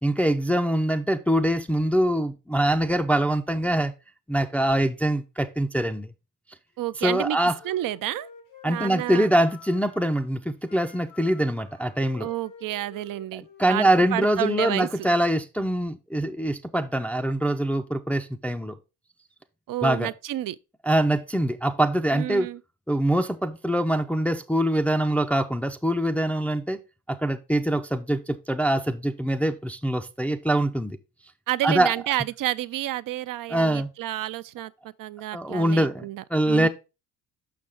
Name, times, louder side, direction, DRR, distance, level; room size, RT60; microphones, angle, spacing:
voice 1, 0.0-3.9 4.3-6.1 7.0-7.5 8.6-12.3 13.6-18.7 19.8-20.1 20.8-22.5 22.9-26.8 27.1-31.0 31.6-31.9 33.5-33.9 35.3-36.0 36.3-36.7, right 1 dB, 5° left, 0.5 m, -24 dB
Wind instrument woodwind instrument, 6.8-10.2 10.6-14.3, left 7 dB, 85° left, 1.9 m, -50 dB
voice 2, 6.8-7.4 7.6-8.3 8.6-9.3 12.2-15.1 19.7-20.6 22.1-22.6 31.5-36.7, right 14 dB, 50° right, 0.5 m, -30 dB
6.0 x 6.0 x 3.5 m
hypercardioid pair, 55°, 43 cm